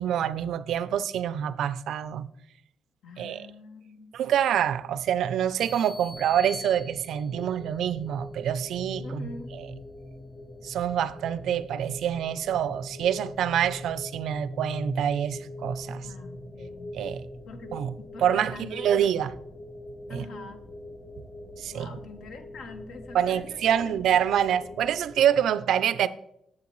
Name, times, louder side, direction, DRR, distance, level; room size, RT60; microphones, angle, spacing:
voice 1, 0.0-2.3 3.2-3.4 4.1-9.7 10.6-16.1 16.9-17.2 17.7-17.9 18.2-19.3 20.1-20.2 21.6-21.9 23.1-26.1, right 9 dB, 80° right, 0.4 m, -26 dB
voice 2, 3.0-4.1 9.0-9.5 16.0-16.9 17.5-18.9 20.1-20.6 21.7-24.9, left 3 dB, 75° left, 1.1 m, -45 dB
sound 1, 5.6-7.5, left 1 dB, 5° left, 0.5 m, -43 dB
sound 2, 6.1-25.2, left 1 dB, 25° left, 1.5 m, -42 dB
9.7 x 7.4 x 3.0 m
cardioid pair, 130°, 0 cm